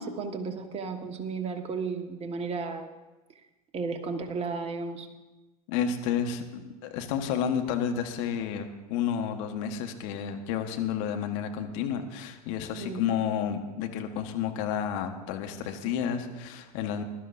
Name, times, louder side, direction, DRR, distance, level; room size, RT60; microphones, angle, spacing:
voice 1, 0.0-2.9 3.7-5.1 12.7-13.0, right 4 dB, 30° right, 5 dB, 1.4 m, -34 dB
voice 2, 5.7-17.0, left 8 dB, 60° left, 5 dB, 1.3 m, -31 dB
20.5 x 11.5 x 2.6 m, 1.1 s
hypercardioid pair, 80°, 19 cm